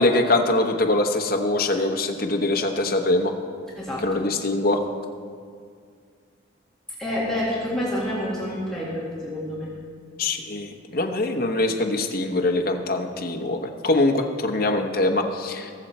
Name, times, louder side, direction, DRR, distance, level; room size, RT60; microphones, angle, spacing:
voice 1, 0.0-3.3 4.0-4.8 10.2-15.7, left 2 dB, 45° left, 3 dB, 1.0 m, -23 dB
voice 2, 3.8-4.3 7.0-9.7, left 1 dB, 5° left, -8 dB, 2.0 m, -28 dB
20.5 x 7.1 x 4.3 m, 2.1 s
head